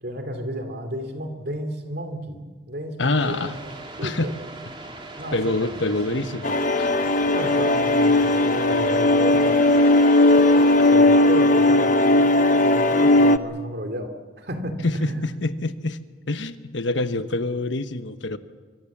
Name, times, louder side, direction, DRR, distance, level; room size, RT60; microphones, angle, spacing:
voice 1, 0.0-3.5 4.0-4.5 5.2-6.3 7.2-9.6 10.9-15.3, equal, 55° right, 6 dB, 2.7 m, -32 dB
voice 2, 3.0-3.5 4.0-4.3 5.3-6.9 10.6-10.7 14.8-16.0 16.3-18.4, left 2 dB, 70° left, 10 dB, 1.1 m, -26 dB
sound 1, 3.2-11.0, right 2 dB, 25° right, 2.9 m, -40 dB
sound 2, 6.4-13.4, left 2 dB, 40° left, 0.8 m, -17 dB
25.0 x 23.5 x 7.3 m, 1.5 s
head